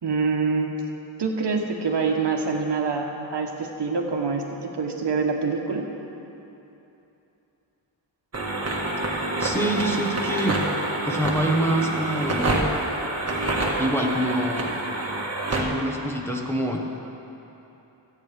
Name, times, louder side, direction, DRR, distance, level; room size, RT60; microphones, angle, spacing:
voice 1, 0.0-0.8 1.2-5.8, right 4 dB, 60° right, 1 dB, 1.3 m, -25 dB
sound 1, 8.3-15.6, right 2 dB, 30° right, 1.7 m, -27 dB
voice 2, 9.4-10.7 11.0-12.6 13.8-14.7 15.5-16.8, right 1 dB, 5° left, -2 dB, 1.3 m, -25 dB
25.5 x 8.5 x 3.5 m, 3.0 s
wide cardioid pair, 115°, 47 cm